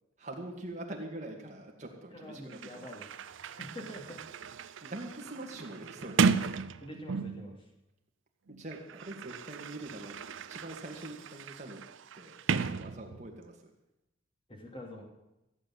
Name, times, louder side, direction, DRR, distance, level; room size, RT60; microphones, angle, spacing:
voice 1, 0.2-2.9 4.8-6.5 8.5-11.8 12.1-13.7, right 1 dB, 35° right, 0 dB, 2.3 m, -44 dB
voice 2, 2.1-4.2 6.8-7.6 14.5-15.0, equal, 25° left, 1 dB, 2.8 m, -45 dB
Sliding door, 2.2-2.3 2.5-7.6 8.5-13.5, right 5 dB, 70° right, 0.5 m, -35 dB
15.0 x 7.9 x 7.8 m, 0.90 s
head